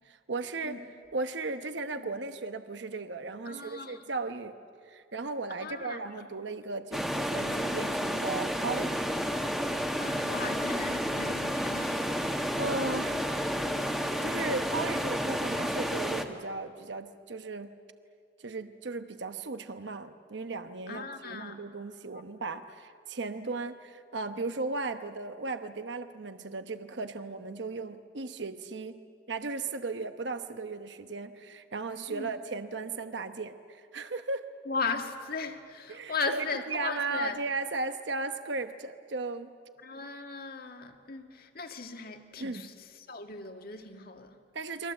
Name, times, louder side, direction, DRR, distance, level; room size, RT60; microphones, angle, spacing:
voice 1, 0.0-0.8 1.1-4.5 4.9-9.0 12.6-13.3 13.9-17.7 18.4-29.0 29.3-34.5 35.9-39.5 42.4-42.7 44.5-44.9, right 3 dB, 65° right, 1.0 m, -36 dB
voice 2, 3.5-4.0 5.6-6.0 10.0-12.1 20.9-21.6 32.1-32.3 34.7-37.4 39.8-44.4, left 4 dB, 55° left, 2.0 m, -37 dB
River Drone, 6.9-16.2, equal, ahead, 1.4 m, -31 dB
30.0 x 23.5 x 7.8 m
head